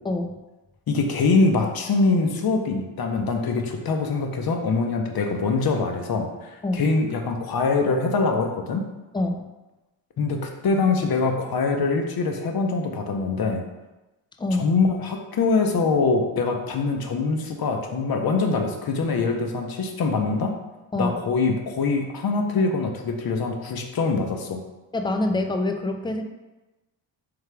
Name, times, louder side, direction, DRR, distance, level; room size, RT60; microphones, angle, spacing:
voice 1, 0.9-8.9 10.2-13.6 14.6-20.6 20.9-24.6, left 4 dB, 50° left, 3 dB, 0.8 m, -23 dB
voice 2, 24.9-26.2, left 2 dB, 10° left, 5 dB, 0.4 m, -25 dB
3.5 x 3.4 x 3.3 m, 1.1 s
cardioid pair, 65°, 47 cm